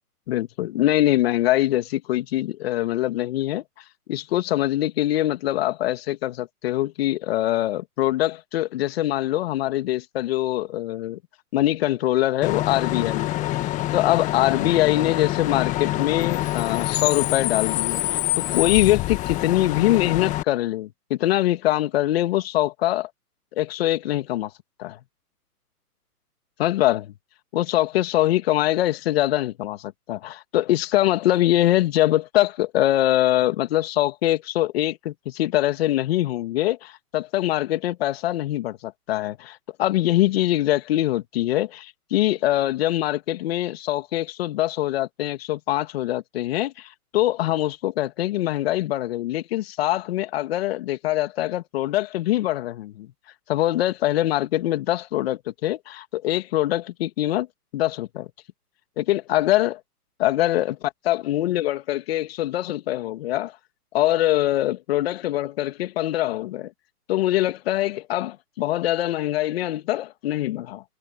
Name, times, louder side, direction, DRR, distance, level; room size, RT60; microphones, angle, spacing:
voice 1, 0.3-3.6 4.1-11.2 11.5-18.0 18.4-23.1 23.5-24.5 24.8-25.0 26.6-27.1 27.5-53.1 53.5-57.5 57.7-58.3 59.0-59.8 60.2-63.5 63.9-66.7 67.1-70.8, left 14 dB, 40° left, 2.5 m, -23 dB
Bus / Idling / Screech, 12.4-20.4, left 15 dB, 15° left, 1.5 m, -26 dB
hypercardioid pair, 145°, 47 cm